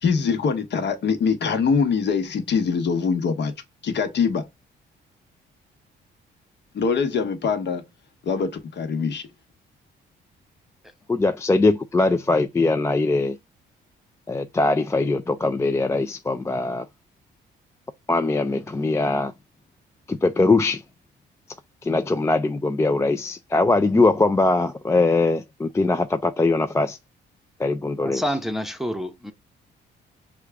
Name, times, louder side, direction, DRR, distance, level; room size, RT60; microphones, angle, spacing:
voice 1, 0.0-3.5 3.8-4.4 6.7-7.8 8.2-9.2, left 5 dB, 60° left, 1.1 m, -23 dB
voice 2, 11.1-13.4 14.3-16.9 18.1-19.3 20.1-20.8 21.8-27.0 27.6-28.2, left 3 dB, 15° left, 0.3 m, -21 dB
voice 3, 28.0-29.3, equal, ahead, 0.7 m, -28 dB
6.2 x 2.3 x 3.4 m
cardioid pair, 90°, 20 cm